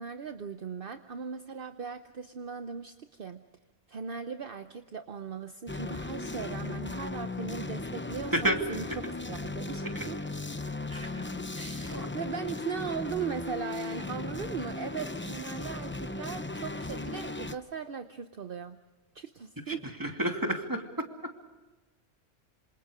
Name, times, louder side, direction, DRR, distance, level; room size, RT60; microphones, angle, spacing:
voice 1, 0.0-3.4 3.9-10.2 11.5-18.8 19.1-19.8, right 6 dB, 55° right, 8 dB, 1.0 m, -38 dB
sound 1, 5.7-17.5, left 2 dB, 15° left, 0.6 m, -37 dB
voice 2, 10.9-11.2 11.9-12.1 19.7-20.8, right 1 dB, 15° right, 3 dB, 2.6 m, -31 dB
27.0 x 27.0 x 5.0 m, 1.2 s
omnidirectional pair, 1.1 m